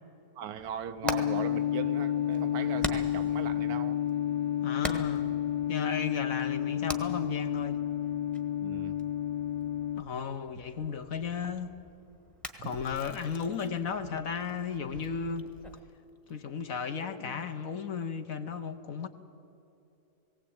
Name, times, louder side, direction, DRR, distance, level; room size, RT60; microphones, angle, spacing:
voice 1, 0.4-4.0 8.6-9.0 12.6-12.7, right 8 dB, 70° right, 1.1 m, -39 dB
Hammer, 0.6-15.8, equal, ahead, 1.0 m, -44 dB
sound 1, 1.0-10.0, left 11 dB, 75° left, 1.2 m, -30 dB
voice 2, 4.6-5.3 5.7-7.8 10.0-11.8 12.6-15.4 16.3-19.1, left 6 dB, 60° left, 1.3 m, -34 dB
Chewing mastication, 12.5-14.0 14.3-17.7, left 3 dB, 35° left, 0.3 m, -54 dB
19.0 x 17.0 x 8.7 m
omnidirectional pair, 1.8 m